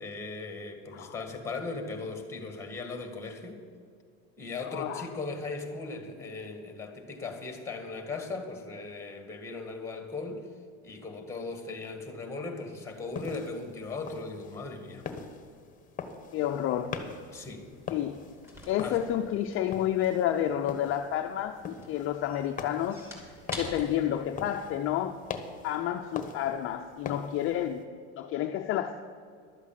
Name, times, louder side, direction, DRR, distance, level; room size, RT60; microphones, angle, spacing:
voice 1, 0.0-3.6 4.4-10.5 10.8-15.1 17.3-17.7 18.8-19.0, left 3 dB, 10° left, 5 dB, 1.8 m, -38 dB
voice 2, 4.6-5.1 16.3-17.0 17.9-18.2 18.7-25.2 25.6-27.9 28.2-29.0, left 11 dB, 40° left, 5 dB, 0.6 m, -30 dB
sound 1, 12.9-27.8, left 5 dB, 25° left, 1.2 m, -43 dB
sound 2, 16.4-25.4, left 1 dB, 5° right, 2.9 m, -48 dB
12.0 x 8.2 x 7.4 m, 2.2 s
supercardioid pair, 125°, 34 cm